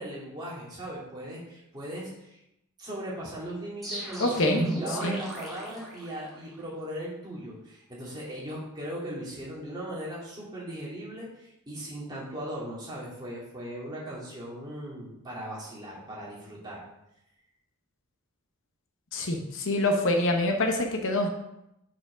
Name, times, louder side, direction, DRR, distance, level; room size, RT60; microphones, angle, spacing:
voice 1, 0.0-2.4 2.8-16.8, right 1 dB, 20° right, -6 dB, 2.5 m, -38 dB
sound 1, 3.8-6.6, right 1 dB, ahead, 2.4 m, -35 dB
voice 2, 4.2-4.6 5.0-5.2 19.1-21.3, left 1 dB, 60° left, 3 dB, 0.9 m, -25 dB
6.1 x 4.8 x 5.1 m, 0.84 s
head